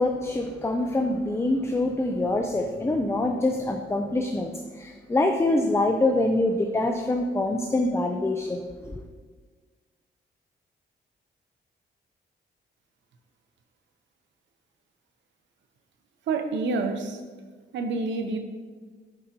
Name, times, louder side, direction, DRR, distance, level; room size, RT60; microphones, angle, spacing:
voice 1, 0.0-8.9, left 2 dB, 15° left, 4 dB, 0.5 m, -25 dB
voice 2, 16.3-17.2 17.7-18.4, right 3 dB, 90° right, 6 dB, 0.8 m, -27 dB
10.5 x 5.0 x 2.9 m, 1.5 s
cardioid pair, 90°, 18 cm